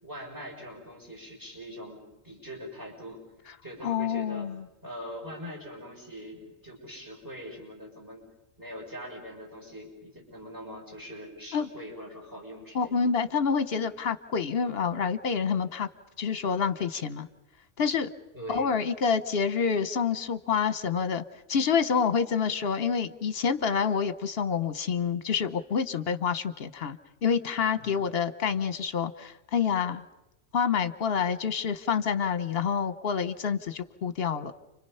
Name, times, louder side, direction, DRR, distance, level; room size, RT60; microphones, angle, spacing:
voice 1, 0.0-3.2 3.6-4.5 4.8-8.3 8.6-13.0 18.3-18.8 27.8-28.0, equal, 15° right, -2 dB, 6.8 m, -42 dB
voice 2, 3.8-4.6 11.5-11.7 12.7-15.9 16.2-17.3 17.8-18.1 18.5-21.2 21.5-30.0 30.5-34.5, left 6 dB, 55° left, 10 dB, 1.2 m, -27 dB
29.5 x 26.0 x 5.7 m, 0.95 s
omnidirectional pair, 1.3 m